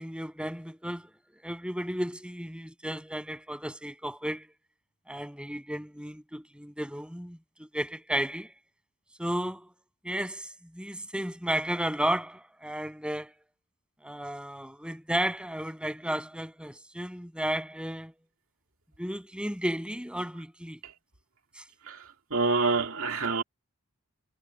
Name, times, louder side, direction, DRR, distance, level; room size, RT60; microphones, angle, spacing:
voice 1, 0.0-4.5 5.1-8.5 9.2-9.7 10.0-13.3 14.0-18.1 19.0-20.8 21.6-21.7, right 1 dB, 5° right, 7.1 m, -33 dB
voice 2, 21.9-23.4, right 4 dB, 65° right, 2.5 m, -27 dB
head